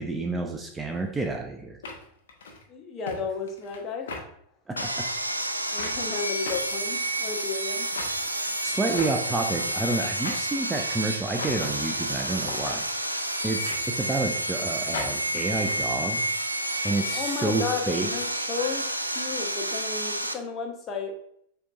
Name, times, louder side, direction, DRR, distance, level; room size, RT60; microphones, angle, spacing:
voice 1, 0.0-1.8 4.7-5.1 8.2-8.3 8.6-12.8 13.4-16.2 16.8-18.1, right 3 dB, 10° right, 3 dB, 0.4 m, -29 dB
sound 1, 0.9-1.0 1.8-2.6 3.1-3.2 3.5-3.8 4.1-4.2 4.8-4.9 5.8-6.0 6.5-7.3 7.9-8.2 8.9-9.4 10.2-10.6 11.4-11.8 12.4-12.8 13.6-14.3 14.9-15.7, left 4 dB, 60° left, 0.8 m, -38 dB
voice 2, 2.7-4.2 5.7-7.9 17.1-21.2, left 5 dB, 30° left, 2 dB, 0.8 m, -33 dB
Sawing, 4.8-20.3, right 1 dB, 85° right, 0.3 m, -30 dB
6.7 x 2.9 x 2.4 m, 0.70 s
figure-of-eight pair, 90°, 0 cm